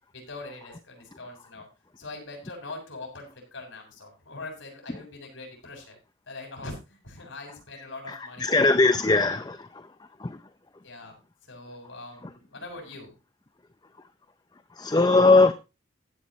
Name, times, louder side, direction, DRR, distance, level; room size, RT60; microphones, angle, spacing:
voice 1, 0.1-1.7 2.0-6.0 6.3-8.5 10.8-13.1, left 2 dB, 75° left, 7.2 m, -42 dB
voice 2, 8.4-9.6 14.8-15.5, left 3 dB, 20° left, 0.5 m, -19 dB
15.5 x 10.5 x 3.1 m
head